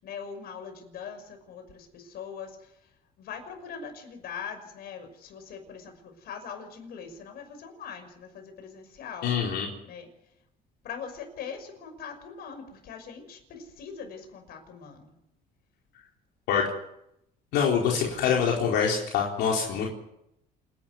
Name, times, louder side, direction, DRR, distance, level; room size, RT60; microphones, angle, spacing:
voice 1, 0.0-2.5 3.2-9.3 9.9-10.1 10.8-15.1, left 6 dB, 70° left, 6 dB, 6.0 m, -41 dB
voice 2, 9.2-9.7 16.5-16.7 17.5-19.9, left 7 dB, 85° left, -2 dB, 4.3 m, -25 dB
28.0 x 12.0 x 9.6 m, 0.81 s
cardioid pair, 110°, 17 cm